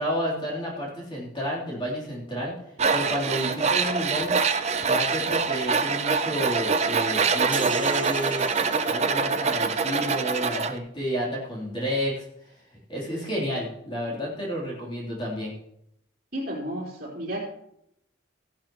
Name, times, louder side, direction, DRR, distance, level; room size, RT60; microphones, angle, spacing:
voice 1, 0.0-2.6 2.9-4.3 4.8-8.4 8.8-12.2 12.9-15.5, equal, 25° left, -5 dB, 3.3 m, -30 dB
Tools, 2.8-10.7, right 5 dB, 35° right, 0.6 m, -25 dB
sound 1, 7.5-9.0, right 4 dB, 5° right, 1.7 m, -36 dB
voice 2, 16.3-17.5, right 1 dB, 50° right, -3 dB, 3.9 m, -32 dB
15.5 x 11.0 x 3.0 m, 0.77 s
head